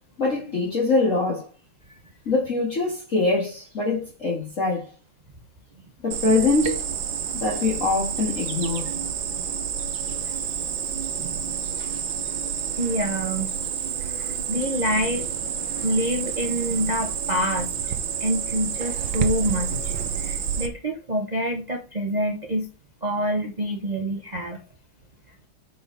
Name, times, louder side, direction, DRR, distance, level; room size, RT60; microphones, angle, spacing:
voice 1, 0.2-1.5 2.3-4.9 6.0-6.9 7.3-8.9, left 3 dB, 40° left, 2.1 m, -23 dB
Cricket, 6.1-20.7, right 8 dB, 70° right, 1.6 m, -29 dB
voice 2, 12.8-13.5 14.1-15.5 15.8-17.7 18.2-22.7 23.0-24.6, equal, 40° right, 0.6 m, -27 dB
7.8 x 5.0 x 4.0 m
omnidirectional pair, 2.3 m